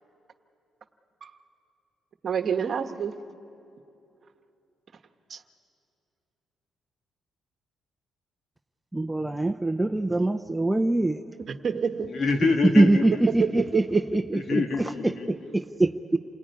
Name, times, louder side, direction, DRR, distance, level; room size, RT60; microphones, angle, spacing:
voice 1, 2.2-3.2 5.3-5.4 11.5-12.1 13.4-14.0, right 7 dB, 50° right, 7 dB, 1.3 m, -28 dB
voice 2, 8.9-11.2 12.8-14.6 15.3-16.2, right 2 dB, 10° right, 7 dB, 0.7 m, -23 dB
voice 3, 12.1-13.2 14.3-15.3, left 4 dB, 55° left, 5 dB, 2.0 m, -26 dB
28.5 x 18.5 x 9.6 m, 2.7 s
cardioid pair, 90°, 0 cm